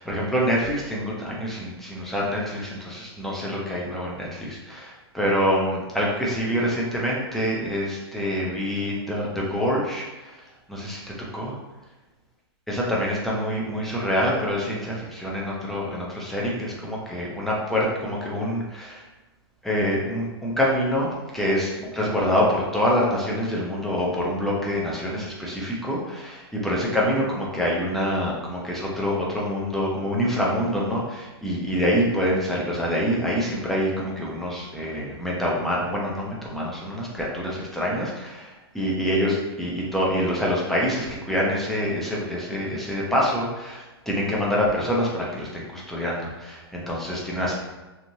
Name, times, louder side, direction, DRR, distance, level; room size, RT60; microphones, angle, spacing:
voice 1, 0.0-10.3 10.7-11.0 11.3-11.5 12.7-19.0 19.6-47.5, equal, ahead, -4 dB, 0.6 m, -26 dB
3.0 x 2.5 x 2.7 m, 1.1 s
hypercardioid pair, 130°, 14 cm